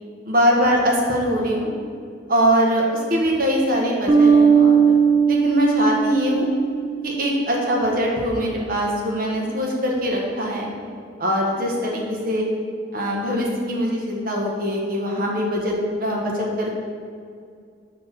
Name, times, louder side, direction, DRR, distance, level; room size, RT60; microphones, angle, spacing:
voice 1, 0.2-1.7 2.3-5.0 5.3-6.5 7.0-10.7 11.2-12.4 12.9-16.7, equal, 55° right, -2 dB, 1.2 m, -22 dB
sound 1, 4.1-7.4, right 6 dB, 25° right, 0.5 m, -17 dB
6.8 x 3.2 x 6.0 m, 2.3 s
head